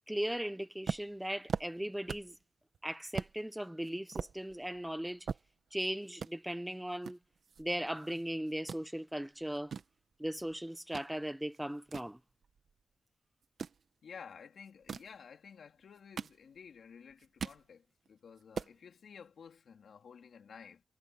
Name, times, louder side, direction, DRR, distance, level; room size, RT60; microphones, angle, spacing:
voice 1, 0.1-2.4 2.8-5.3 5.7-7.2 7.6-9.7 10.2-12.2, right 1 dB, 5° right, 0.7 m, -38 dB
sound 1, 0.8-2.4 2.7-2.8 3.1-3.4 3.8-5.8 6.1-6.3 7.0-8.2 8.5-8.8 9.4-11.1 11.5-12.8 13.4-13.8 14.7-15.2 15.8-16.8 17.1-17.7 18.1-18.2 18.4-18.8, right 6 dB, 70° right, 1.4 m, -41 dB
voice 2, 14.0-20.8, left 6 dB, 80° left, 3.6 m, -53 dB
wide cardioid pair, 95°, 0 cm